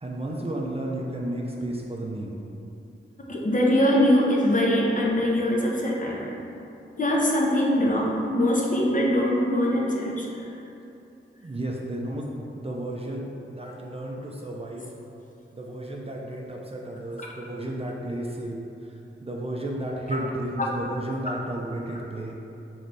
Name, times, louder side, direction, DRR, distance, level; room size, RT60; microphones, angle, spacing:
voice 1, 0.0-2.3 11.4-12.3 12.5-14.8 15.5-18.6 19.2-22.3, right 1 dB, 30° right, -2 dB, 0.5 m, -32 dB
voice 2, 3.3-6.3 7.0-10.2 20.6-20.7, left 1 dB, 40° left, -3 dB, 0.7 m, -22 dB
3.3 x 3.1 x 4.0 m, 2.8 s
wide cardioid pair, 50°, 21 cm